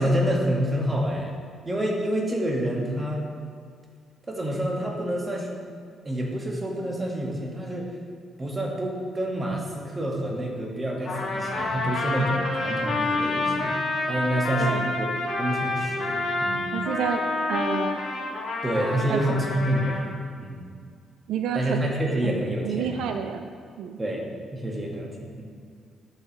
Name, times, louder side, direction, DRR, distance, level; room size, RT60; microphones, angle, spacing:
voice 1, 0.0-1.3 1.7-3.2 4.3-5.6 6.0-7.9 8.4-13.8 14.1-15.1 15.4-16.7 18.6-20.7 21.5-22.9 24.0-24.3 24.5-25.4, right 1 dB, 20° right, -1 dB, 1.7 m, -28 dB
Trumpet, 11.0-20.0, left 2 dB, 50° left, 2.1 m, -28 dB
voice 2, 14.6-14.9 16.7-17.2 17.5-18.0 19.1-19.2 21.3-21.9 22.2-23.5 23.8-24.0, right 8 dB, 80° right, 6 dB, 0.5 m, -29 dB
11.5 x 7.3 x 3.2 m, 2.1 s
cardioid pair, 90°, 0 cm